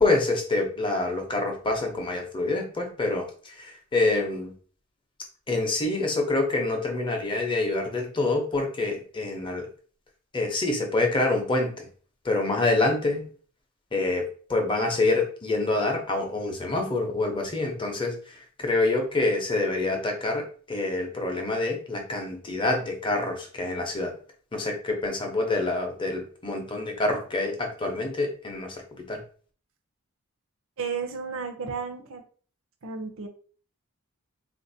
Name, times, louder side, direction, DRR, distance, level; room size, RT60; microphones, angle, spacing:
voice 1, 0.0-4.5 5.5-9.7 10.3-11.9 12.2-13.2 13.9-24.1 24.5-29.2, left 2 dB, 20° left, 2 dB, 0.7 m, -26 dB
voice 2, 30.8-32.2 32.8-33.3, right 5 dB, 60° right, 7 dB, 0.6 m, -33 dB
3.8 x 2.5 x 2.6 m, 0.43 s
head